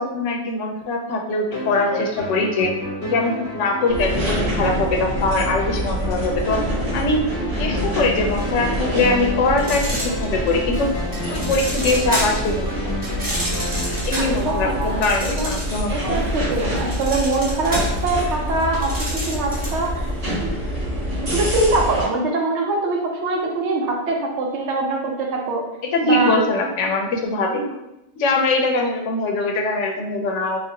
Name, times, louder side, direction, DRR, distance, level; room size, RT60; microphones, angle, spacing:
voice 1, 0.0-2.7 3.0-10.9 11.3-12.9 14.0-16.2 25.8-27.8 28.2-30.6, left 2 dB, 75° left, 2 dB, 0.9 m, -22 dB
sound 1, 1.5-15.1, left 1 dB, 30° left, 0.8 m, -31 dB
sound 2, 3.9-22.0, equal, 85° right, 1.8 m, -26 dB
sound 3, 9.6-10.6 11.1-12.5 13.0-16.0 16.3-19.9, right 1 dB, 20° right, 0.8 m, -29 dB
voice 2, 14.1-15.5 15.9-19.9 20.4-20.5 20.9-21.0 21.3-25.6 26.0-26.4, right 2 dB, 65° right, 0 dB, 0.9 m, -23 dB
3.3 x 2.5 x 2.8 m, 0.90 s
omnidirectional pair, 1.3 m